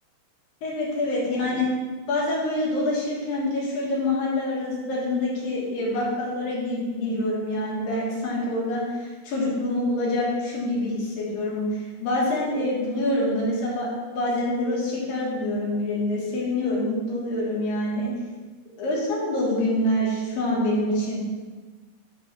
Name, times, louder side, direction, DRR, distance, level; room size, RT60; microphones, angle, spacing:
voice 1, 0.6-1.7 2.1-18.1 18.8-21.2, left 1 dB, 75° left, -4 dB, 3.3 m, -26 dB
6.9 x 3.6 x 5.7 m, 1.3 s
omnidirectional pair, 4.1 m